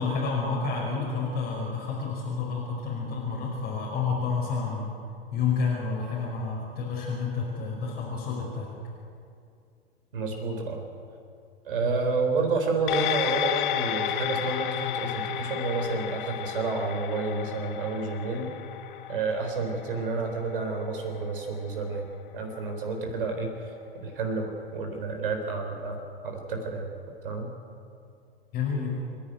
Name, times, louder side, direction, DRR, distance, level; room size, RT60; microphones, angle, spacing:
voice 1, 0.0-4.9 5.3-8.7 11.8-12.0 28.5-29.1, left 5 dB, 30° left, -4 dB, 5.3 m, -29 dB
voice 2, 10.1-10.8 11.7-18.5 19.1-22.1 22.3-23.5 24.0-26.9 27.2-27.5, right 3 dB, 60° right, 4 dB, 4.0 m, -30 dB
sound 1, 12.9-21.6 21.9-22.0, left 11 dB, 55° left, 1.2 m, -32 dB
27.0 x 11.0 x 9.3 m, 2.4 s
figure-of-eight pair, 95°, 30 cm